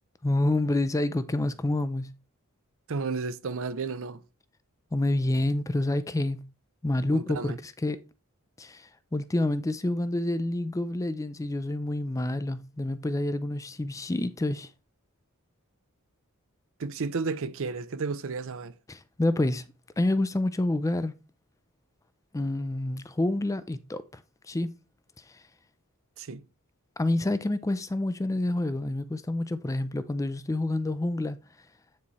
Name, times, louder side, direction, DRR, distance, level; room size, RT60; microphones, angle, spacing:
voice 1, 0.2-2.1 4.9-6.5 6.8-8.0 8.6-14.7 18.9-19.6 20.0-21.1 22.3-24.2 24.5-24.7 27.0-31.4, left 1 dB, 15° left, 0.4 m, -28 dB
voice 2, 2.9-4.2 7.1-7.6 16.8-18.7 26.2-26.4, right 4 dB, 65° right, 0.6 m, -32 dB
9.4 x 3.2 x 4.2 m
head